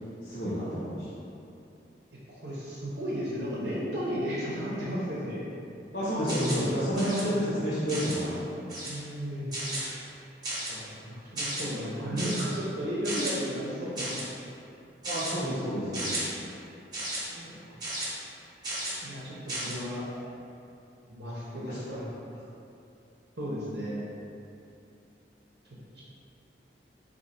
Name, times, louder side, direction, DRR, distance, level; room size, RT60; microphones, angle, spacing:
voice 1, 0.2-1.1 5.9-8.4 15.0-16.3 21.6-22.0, equal, 55° left, -12 dB, 1.0 m, -30 dB
voice 2, 2.3-5.4 8.8-9.5 10.7-14.2 17.3-17.8 19.0-20.0 21.1-22.0 23.4-24.0 25.9-26.0, equal, 70° right, -7 dB, 0.8 m, -34 dB
sound 1, 6.3-6.7 7.0-7.2 7.9-8.2 8.7-9.0 9.5-9.9 10.4-10.8 11.4-11.6 12.2-12.4 13.0-13.3 14.0-14.3 15.0-15.3 15.9-16.2 16.9-17.2 17.8-18.1 18.6-19.0 19.5-19.7, right 1 dB, 20° right, 0.9 m, -34 dB
4.0 x 2.7 x 4.2 m, 2.7 s
head